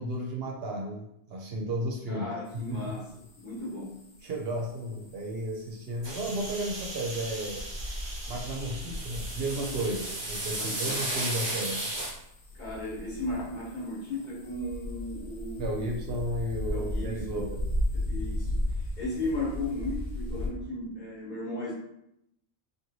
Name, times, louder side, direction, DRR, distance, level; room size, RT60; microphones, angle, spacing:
voice 1, 0.0-2.3 2.5-2.9 4.2-7.6 8.3-11.8 15.6-17.6 18.2-18.3, right 1 dB, 65° right, 0 dB, 0.7 m, -33 dB
voice 2, 2.1-4.0 10.5-11.0 12.5-16.1 16.7-17.4 17.9-21.7, left 2 dB, 45° left, -7 dB, 1.1 m, -36 dB
sound 1, 2.5-20.5, left 1 dB, 85° left, 1.0 m, -37 dB
sound 2, 6.0-12.1, right 1 dB, 30° right, 0.6 m, -35 dB
3.1 x 2.3 x 2.6 m, 0.79 s
omnidirectional pair, 1.2 m